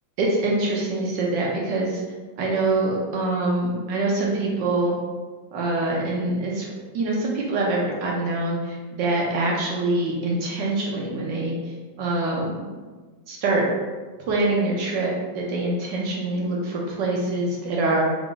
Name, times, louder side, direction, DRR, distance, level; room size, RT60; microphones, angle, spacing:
voice 1, 0.2-2.0 2.4-5.0 5.5-6.7 6.9-12.6 13.3-13.6 14.3-18.0, right 2 dB, 70° right, -2 dB, 1.3 m, -24 dB
3.4 x 2.5 x 3.6 m, 1.3 s
omnidirectional pair, 2.1 m